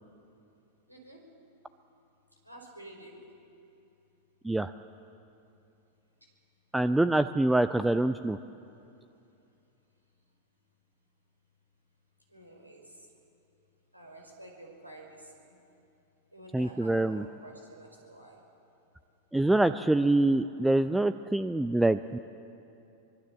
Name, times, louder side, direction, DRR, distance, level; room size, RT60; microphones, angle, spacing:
voice 1, 0.9-1.2 2.4-3.2 12.3-13.0 13.9-15.6 16.3-18.4, right 1 dB, 85° right, 0 dB, 4.9 m, -49 dB
voice 2, 6.7-8.4 16.5-17.2 19.3-22.2, right 2 dB, 5° right, 12 dB, 0.5 m, -25 dB
24.5 x 22.0 x 7.4 m, 2.7 s
figure-of-eight pair, 90°, 0 cm